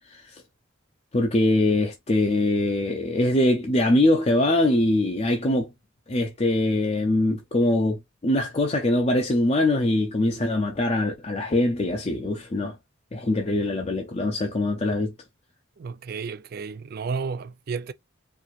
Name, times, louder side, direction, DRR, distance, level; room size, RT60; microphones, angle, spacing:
voice 1, 0.1-0.4 1.1-5.7 6.1-12.8 13.1-15.1, left 1 dB, 30° left, 0.6 m, -23 dB
voice 2, 15.8-17.9, right 5 dB, 50° right, 0.4 m, -32 dB
4.5 x 2.6 x 2.5 m
head